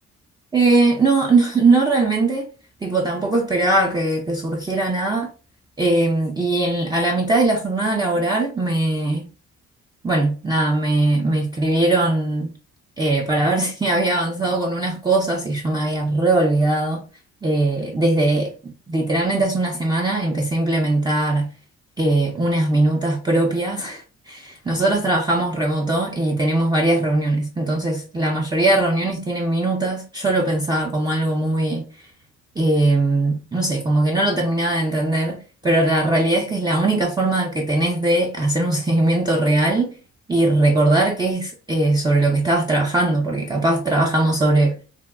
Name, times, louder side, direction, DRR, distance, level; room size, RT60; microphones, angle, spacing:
voice 1, 0.5-2.5 2.8-5.3 5.8-9.3 10.0-12.5 13.0-17.0 17.4-21.5 22.0-31.9 32.6-35.4 35.6-39.9 40.3-44.8, right 2 dB, 15° right, 0.5 m, -20 dB
3.5 x 2.1 x 2.2 m
cardioid pair, 90°, 30 cm